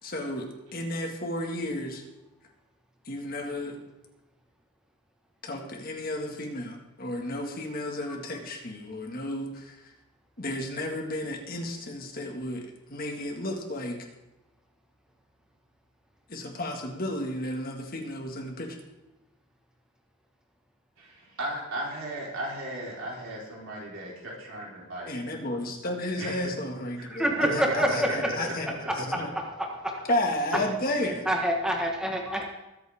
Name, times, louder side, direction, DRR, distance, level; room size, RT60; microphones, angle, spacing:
voice 1, 0.0-2.0 3.1-3.8 5.4-9.8 10.4-14.0 16.3-18.8 25.1-27.3 27.5-28.7 28.9-29.3 30.1-31.3, left 1 dB, 45° left, 2 dB, 1.9 m, -33 dB
voice 2, 21.0-25.1 26.2-26.5 27.3-27.6 28.2-28.3 28.8-28.9 30.5-30.6, right 1 dB, 80° right, -4 dB, 4.3 m, -36 dB
voice 3, 27.1-28.1 31.3-32.4, equal, 5° right, 0 dB, 1.5 m, -26 dB
21.0 x 8.0 x 3.7 m, 0.99 s
head